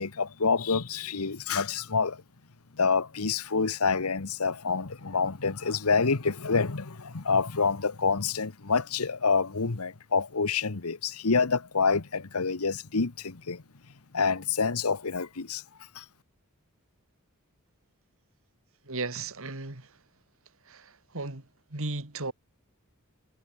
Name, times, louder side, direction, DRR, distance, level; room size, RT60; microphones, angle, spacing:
voice 1, 0.0-2.2 2.8-13.6 14.1-15.6 15.9-16.0, left 5 dB, 85° left, 1.2 m, -27 dB
voice 2, 18.9-19.9 20.7-21.4 21.7-22.3, right 3 dB, 65° right, 2.7 m, -35 dB
head